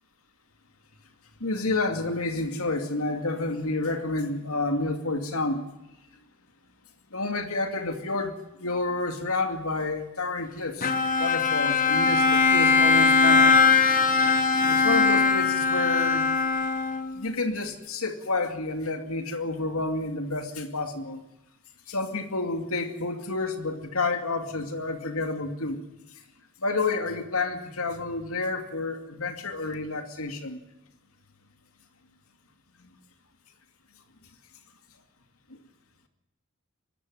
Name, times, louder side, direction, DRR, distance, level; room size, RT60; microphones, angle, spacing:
voice 1, 1.4-5.6 7.1-13.7 14.7-16.4 17.1-21.2 21.9-25.8 26.1-26.2 26.6-30.6 32.8-32.9, left 3 dB, 90° left, 6 dB, 2.5 m, -30 dB
Bowed string instrument, 10.8-17.2, left 4 dB, 40° left, 1.7 m, -21 dB
23.5 x 13.5 x 9.6 m, 0.92 s
head